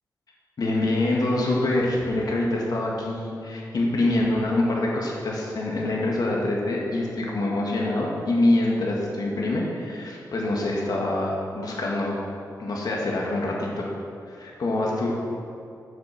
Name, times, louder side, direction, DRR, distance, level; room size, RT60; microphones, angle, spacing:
voice 1, 0.6-12.2 12.6-13.9 14.3-15.2, left 2 dB, 60° left, -2 dB, 1.9 m, -25 dB
7.7 x 6.9 x 5.9 m, 2.6 s
cardioid pair, 75°, 7 cm